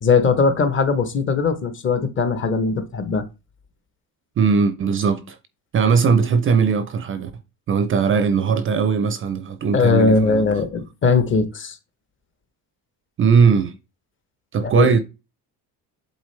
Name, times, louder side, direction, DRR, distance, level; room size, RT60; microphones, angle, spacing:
voice 1, 0.0-3.3 9.7-11.8 14.6-14.9, left 4 dB, 30° left, 0.8 m, -19 dB
voice 2, 4.4-5.4 5.7-7.3 7.7-10.5 13.2-13.7 14.5-15.0, right 5 dB, 35° right, 0.4 m, -19 dB
8.1 x 3.8 x 3.2 m
cardioid pair, 160°, 38 cm